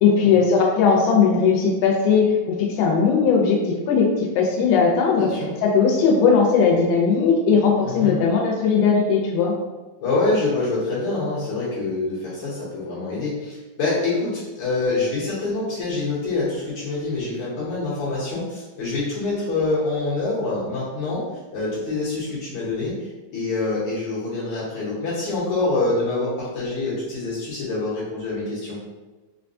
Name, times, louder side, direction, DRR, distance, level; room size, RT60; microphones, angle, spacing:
voice 1, 0.0-3.6 3.9-5.3 5.6-9.5, left 5 dB, 85° left, -1 dB, 2.4 m, -18 dB
voice 2, 5.1-5.5 7.8-8.2 10.0-21.2 21.5-28.8, left 3 dB, 70° left, -8 dB, 2.0 m, -26 dB
5.2 x 2.2 x 2.6 m, 1.2 s
omnidirectional pair, 3.9 m